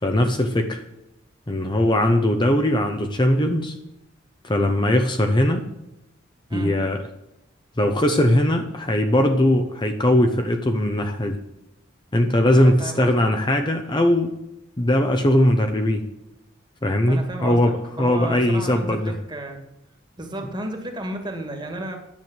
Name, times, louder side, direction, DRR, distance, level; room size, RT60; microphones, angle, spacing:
voice 1, 0.0-0.8 1.5-3.7 4.4-5.6 6.5-7.0 7.8-11.4 12.1-14.3 14.8-16.1 16.8-19.1, left 1 dB, 25° left, 5 dB, 0.8 m, -20 dB
voice 2, 12.6-13.1 17.1-19.6 20.2-22.0, right 1 dB, 25° right, 4 dB, 2.0 m, -33 dB
10.5 x 7.0 x 7.9 m, 0.90 s
head